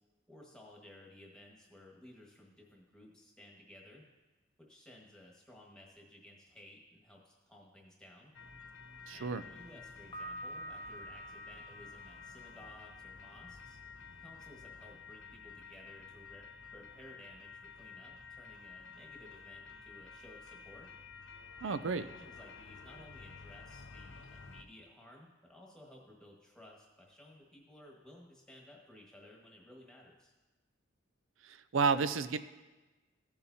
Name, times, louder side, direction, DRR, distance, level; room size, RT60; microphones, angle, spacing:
voice 1, 0.3-4.0 4.6-8.3 9.1-13.8 14.2-16.5 16.7-21.0 21.6-30.3, left 1 dB, 5° left, -2 dB, 1.5 m, -57 dB
sound 1, 8.3-24.6, left 5 dB, 70° left, 0.6 m, -52 dB
voice 2, 9.1-9.4 21.6-22.0 31.4-32.4, right 5 dB, 75° right, 13 dB, 0.5 m, -31 dB
Piano, 10.1-13.0, right 1 dB, 20° left, 0.8 m, -47 dB
15.5 x 7.0 x 2.7 m, 1.2 s
head